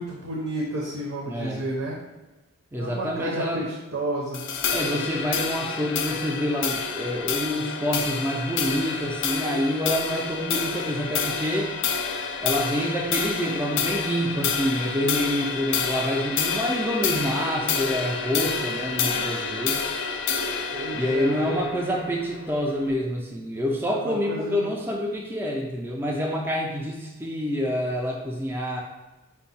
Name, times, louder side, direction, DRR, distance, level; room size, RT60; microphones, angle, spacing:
voice 1, 0.0-1.9 2.8-3.6 3.9-4.4 20.7-21.7 23.8-24.7, right 1 dB, 70° right, -2 dB, 0.7 m, -31 dB
voice 2, 1.3-1.6 2.7-3.7 4.7-11.7 12.4-19.8 20.9-28.8, equal, 10° right, -1 dB, 0.4 m, -27 dB
sound 1, 4.3-22.9, left 6 dB, 55° left, 0.4 m, -29 dB
5.2 x 2.2 x 4.1 m, 1.1 s
head